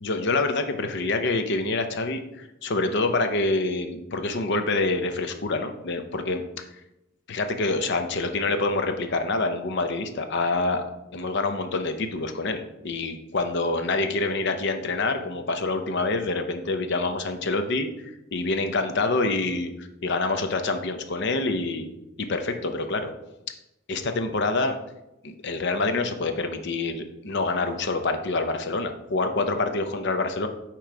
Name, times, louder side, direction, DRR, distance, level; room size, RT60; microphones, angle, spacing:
voice 1, 0.0-6.6 7.3-10.8 11.1-21.9 22.2-23.1 23.9-24.8 25.2-30.5, left 3 dB, 60° left, 7 dB, 0.7 m, -26 dB
8.9 x 3.1 x 4.7 m, 0.92 s
head